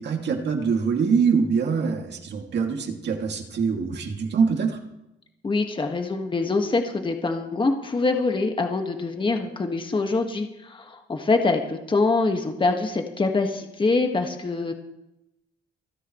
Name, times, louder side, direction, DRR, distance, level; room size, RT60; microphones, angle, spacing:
voice 1, 0.0-4.8, right 5 dB, 60° right, 2 dB, 2.5 m, -24 dB
voice 2, 5.4-14.7, left 3 dB, 25° left, 4 dB, 1.7 m, -24 dB
28.0 x 10.0 x 3.2 m, 0.91 s
cardioid pair, 90°, 20 cm